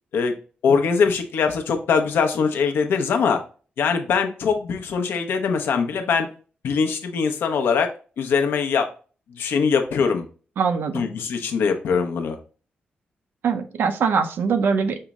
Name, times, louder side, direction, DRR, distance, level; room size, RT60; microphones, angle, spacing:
voice 1, 0.6-3.4 3.8-6.3 6.6-8.9 9.3-10.3 10.9-12.4, left 5 dB, 90° left, 5 dB, 0.6 m, -22 dB
voice 2, 10.6-11.0 13.4-15.0, right 5 dB, 80° right, 8 dB, 0.5 m, -22 dB
5.4 x 2.0 x 3.5 m, 0.38 s
wide cardioid pair, 135°, 4 cm